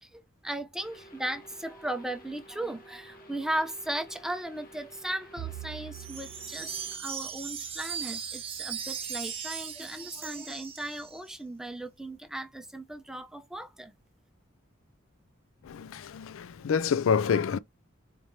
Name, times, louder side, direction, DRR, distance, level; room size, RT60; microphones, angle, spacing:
voice 1, 0.0-13.9, right 1 dB, 5° right, 0.6 m, -37 dB
sound 1, 0.8-7.0, equal, 45° left, 1.1 m, -53 dB
Bowed string instrument, 5.4-9.8, right 13 dB, 85° right, 0.6 m, -47 dB
Wind chime, 5.9-11.3, right 7 dB, 30° right, 1.0 m, -38 dB
voice 2, 15.6-17.6, left 6 dB, 85° left, 0.4 m, -27 dB
4.5 x 3.1 x 2.7 m
head